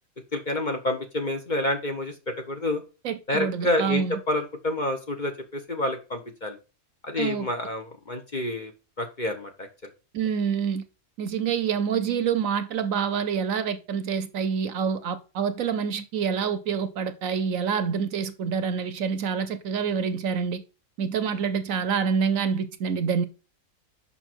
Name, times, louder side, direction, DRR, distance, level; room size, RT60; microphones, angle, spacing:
voice 1, 0.3-2.8 3.3-6.5 7.0-8.7 9.0-9.7, left 1 dB, 35° left, 1.0 m, -28 dB
voice 2, 3.0-4.2 7.2-7.5 10.1-10.8 11.2-20.6 21.0-23.2, right 6 dB, 65° right, 1.0 m, -27 dB
7.0 x 5.9 x 4.4 m
omnidirectional pair, 1.6 m